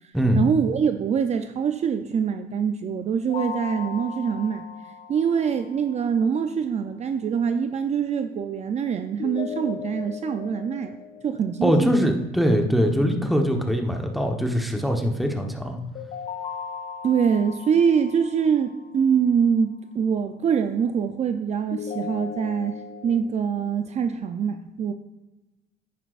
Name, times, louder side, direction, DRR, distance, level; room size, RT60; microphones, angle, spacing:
voice 1, 0.4-4.7 5.1-11.0 11.2-11.9 17.0-22.7 23.0-24.9, right 7 dB, 40° right, 8 dB, 0.5 m, -24 dB
sound 1, 3.3-6.2 9.2-12.2 15.9-19.2 21.7-23.2, left 6 dB, 50° left, 1.1 m, -37 dB
voice 2, 11.6-15.8, equal, ahead, 3 dB, 1.1 m, -22 dB
10.0 x 10.0 x 2.5 m, 1.0 s
cardioid pair, 110°, 17 cm